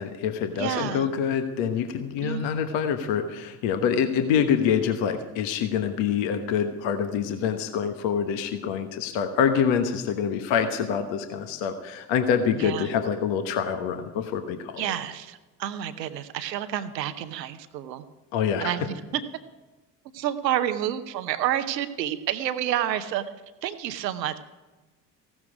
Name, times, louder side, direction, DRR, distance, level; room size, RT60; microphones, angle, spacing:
voice 1, 0.0-14.8 18.3-18.7, left 7 dB, 65° left, 7 dB, 1.3 m, -26 dB
voice 2, 0.5-1.1 2.2-2.5 12.5-12.9 14.8-18.1 18.6-19.2 20.1-23.2 23.6-24.4, right 11 dB, 85° right, 12 dB, 0.9 m, -29 dB
15.5 x 12.5 x 5.0 m, 1.2 s
figure-of-eight pair, 50°, 49 cm